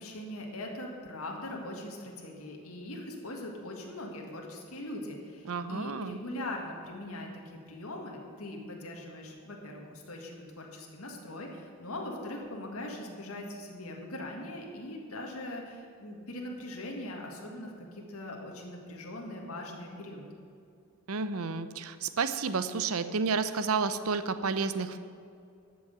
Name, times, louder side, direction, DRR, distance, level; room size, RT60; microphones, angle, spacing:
voice 1, 0.0-20.3, left 1 dB, 70° left, 0 dB, 1.8 m, -41 dB
voice 2, 5.5-6.2 21.1-25.0, right 4 dB, 70° right, 12 dB, 0.6 m, -31 dB
12.0 x 6.3 x 8.1 m, 2.4 s
head